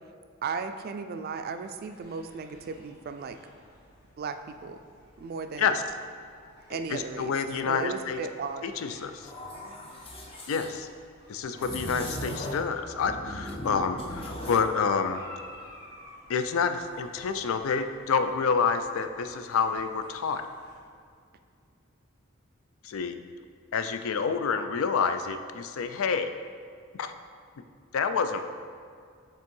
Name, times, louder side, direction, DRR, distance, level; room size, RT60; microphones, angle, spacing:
voice 1, 0.4-3.4 4.2-4.8 5.2-5.8 6.7-7.3 7.7-8.7, right 5 dB, 50° right, 9 dB, 0.3 m, -35 dB
sound 1, 1.4-20.8, left 1 dB, 55° left, 1.3 m, -54 dB
voice 2, 6.9-8.2 8.6-9.3 10.5-10.9 11.3-15.2 16.3-20.4 22.8-23.2 23.7-26.3 27.0-27.1 27.9-28.4, left 5 dB, 80° left, 9 dB, 0.4 m, -28 dB
sound 2, 9.2-10.7 11.6-12.7 13.0-14.7, left 1 dB, 30° left, 0.7 m, -38 dB
5.3 x 3.5 x 5.3 m, 2.3 s
head